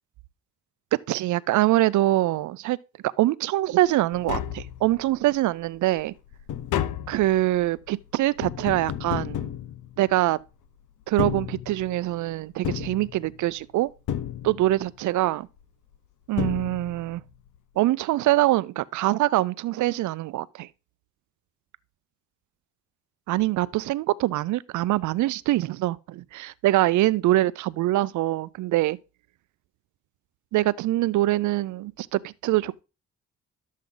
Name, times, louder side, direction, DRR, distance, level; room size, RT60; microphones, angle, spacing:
voice 1, 0.9-2.8 3.0-6.1 7.1-9.5 10.0-10.4 11.1-13.9 14.4-15.5 16.3-17.2 17.8-20.7 23.3-29.0 30.5-32.8, right 16 dB, 75° right, 0.5 m, -24 dB
Tap, 3.8-3.9 4.1-5.2 5.7-10.4 11.0-12.1 12.6-13.6 14.1-14.9 15.9-16.0 16.4-17.2 17.5-17.6, left 10 dB, 80° left, 0.7 m, -32 dB
11.5 x 7.4 x 3.8 m
cardioid pair, 90°, 30 cm